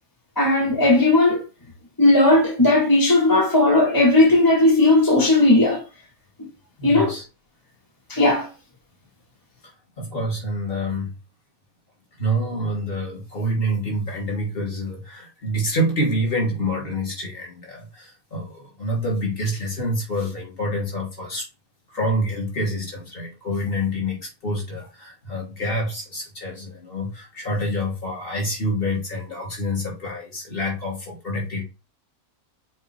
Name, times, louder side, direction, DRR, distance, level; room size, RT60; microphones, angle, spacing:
voice 1, 0.4-1.4 2.0-5.8 6.8-7.2 8.1-8.5, left 2 dB, 15° left, 1.6 m, -16 dB
voice 2, 6.8-7.3 10.0-11.1 12.2-21.5 21.9-31.6, equal, 40° left, 3.3 m, -27 dB
6.4 x 4.7 x 3.4 m
omnidirectional pair, 1.5 m